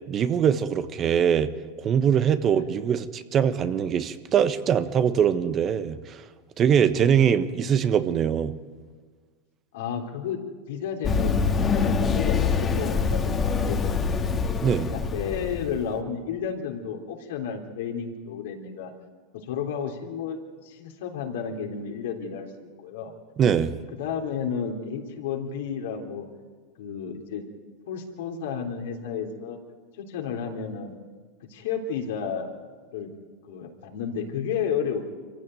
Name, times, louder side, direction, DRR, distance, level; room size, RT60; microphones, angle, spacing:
voice 1, 0.1-1.5 1.8-6.2 6.6-8.5 14.6-14.9 23.4-23.7, right 8 dB, 35° right, 1.3 m, -22 dB
voice 2, 2.4-2.7 7.0-7.4 9.7-10.4 10.7-14.3 14.9-18.9 19.3-23.1 24.0-26.3 26.8-27.4 27.9-29.6 30.0-30.9 31.5-32.6 32.9-33.1 33.5-35.0, left 7 dB, 80° left, 3.6 m, -32 dB
Run, 11.0-15.8, left 5 dB, 25° left, 1.9 m, -25 dB
25.0 x 15.5 x 9.3 m
hypercardioid pair, 110°, 0 cm